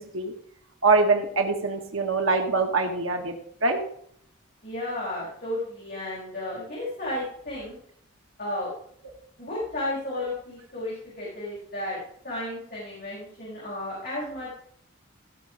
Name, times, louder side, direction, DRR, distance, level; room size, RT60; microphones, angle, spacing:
voice 1, 0.8-3.3 3.6-3.8, right 3 dB, 80° right, 3 dB, 1.5 m, -23 dB
voice 2, 4.6-7.8 8.4-8.7 9.4-12.0 12.2-14.6, left 1 dB, 45° left, -8 dB, 5.5 m, -33 dB
15.5 x 6.2 x 4.9 m, 0.65 s
head